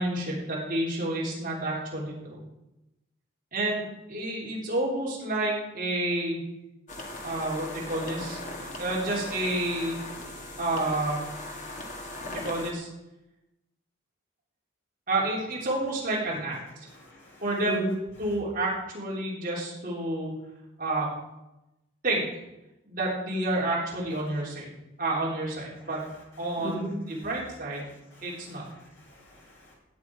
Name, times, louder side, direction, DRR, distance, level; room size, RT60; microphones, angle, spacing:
voice 1, 0.0-2.4 3.5-6.4 7.2-8.4 8.8-10.0 10.6-11.2 12.3-12.9 15.1-16.6 17.4-17.8 18.2-20.3 20.8-21.1 22.0-22.2 22.9-24.7 25.0-26.0 26.4-27.9 28.2-28.6, right 2 dB, 40° right, -4 dB, 3.6 m, -29 dB
sound 1, 6.9-12.7, left 1 dB, 35° left, 1.9 m, -39 dB
voice 2, 16.9-17.9 25.8-25.9 26.6-26.9 27.2-27.3 28.1-29.7, right 1 dB, 70° left, -4 dB, 6.2 m, -38 dB
16.5 x 9.7 x 4.8 m, 0.95 s
head